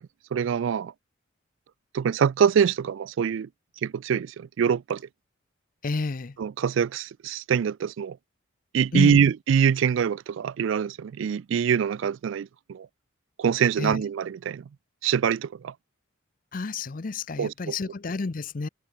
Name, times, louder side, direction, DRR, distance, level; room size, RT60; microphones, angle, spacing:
voice 1, 0.3-0.9 1.9-3.5 3.8-5.0 6.4-8.2 8.7-12.9 13.4-14.6 15.0-15.7 17.4-17.7, right 7 dB, 65° right, 0.3 m, -24 dB
voice 2, 5.8-6.4 8.9-9.2 13.8-14.0 16.5-18.7, left 3 dB, 40° left, 0.5 m, -30 dB
head